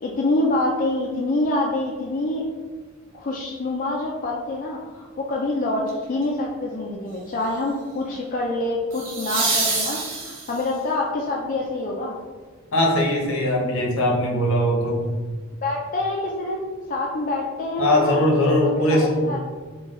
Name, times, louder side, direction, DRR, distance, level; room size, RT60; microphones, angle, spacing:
voice 1, 0.0-2.4 3.1-12.1 15.6-19.4, left 2 dB, 40° left, -2 dB, 0.4 m, -26 dB
sound 1, 5.9-6.2 8.9-10.8 13.7-13.8, right 3 dB, 60° right, 1.1 m, -26 dB
voice 2, 12.7-15.2 17.8-19.3, left 1 dB, 70° left, -1 dB, 0.9 m, -20 dB
4.0 x 2.3 x 3.6 m, 1.5 s
head